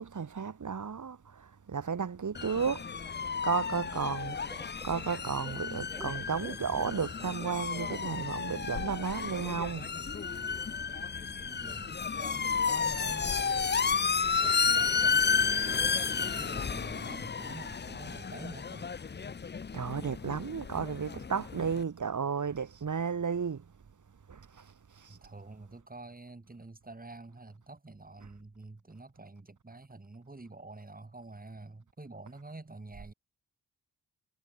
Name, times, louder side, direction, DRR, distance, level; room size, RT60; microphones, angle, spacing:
voice 1, 0.0-2.8 3.4-9.9 19.7-23.6 24.3-24.6 25.0-25.1, right 6 dB, 55° right, 2.4 m, -33 dB
sound 1, 2.3-21.8, left 5 dB, 30° left, 0.6 m, -32 dB
sound 2, 4.5-9.8, left 1 dB, 5° left, 6.9 m, -48 dB
voice 2, 11.4-13.5 14.4-18.9 25.1-33.1, right 2 dB, 25° right, 6.3 m, -48 dB
wide cardioid pair, 105°, 37 cm